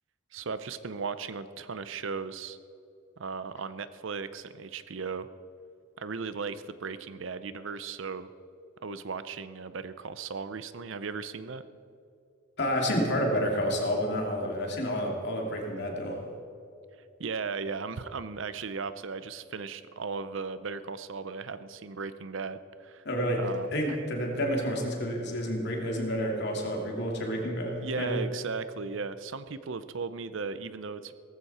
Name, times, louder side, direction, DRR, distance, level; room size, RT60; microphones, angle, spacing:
voice 1, 0.3-2.6 3.2-5.3 6.0-8.3 8.8-11.6 17.2-23.0 23.4-23.7 27.8-31.2, right 5 dB, 65° right, 13 dB, 0.6 m, -36 dB
voice 2, 12.6-16.2 23.0-28.2, equal, 55° left, 1 dB, 2.7 m, -29 dB
18.0 x 14.5 x 4.3 m, 2.6 s
head